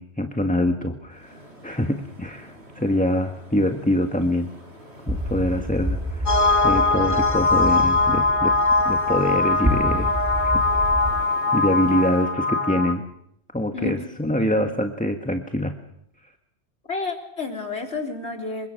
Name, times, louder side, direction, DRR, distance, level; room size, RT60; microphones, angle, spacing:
voice 1, 0.0-4.5 5.1-6.4 6.6-8.5 8.8-10.1 10.4-10.5 11.5-13.0 13.5-15.8, left 1 dB, 5° left, 5 dB, 1.5 m, -24 dB
sound 1, 1.1-12.2, equal, 65° right, 7.6 m, -45 dB
sound 2, 5.1-11.2, equal, 15° right, 2.1 m, -29 dB
sound 3, 6.3-12.9, left 3 dB, 40° left, 2.2 m, -21 dB
voice 2, 14.4-14.7 16.9-18.7, left 3 dB, 65° left, 3 dB, 4.3 m, -30 dB
28.0 x 25.0 x 6.6 m, 0.75 s
omnidirectional pair, 1.2 m